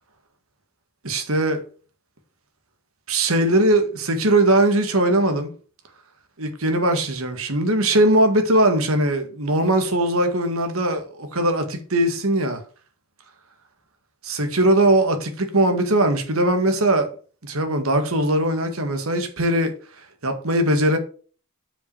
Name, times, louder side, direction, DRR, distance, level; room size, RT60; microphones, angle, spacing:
voice 1, 1.0-1.6 3.1-5.5 6.4-12.6 14.2-17.1 17.4-19.7 20.2-21.0, right 1 dB, 85° right, 1.8 m, -20 dB
6.6 x 5.2 x 6.7 m
head